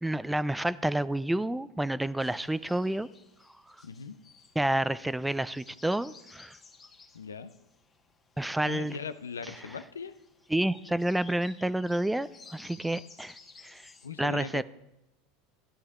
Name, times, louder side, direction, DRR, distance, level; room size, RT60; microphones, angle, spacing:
voice 1, 0.0-3.1 4.6-6.5 8.4-9.0 10.5-13.4 13.6-13.9 14.2-14.6, right 1 dB, 5° right, 18 dB, 0.3 m, -29 dB
sound 1, 2.2-14.1, left 4 dB, 25° left, 1.2 m, -56 dB
voice 2, 3.8-4.2 7.1-7.5 8.6-10.1 14.0-14.6, left 5 dB, 90° left, 12 dB, 0.5 m, -39 dB
15.0 x 11.0 x 2.4 m, 0.90 s
hypercardioid pair, 85°, 0 cm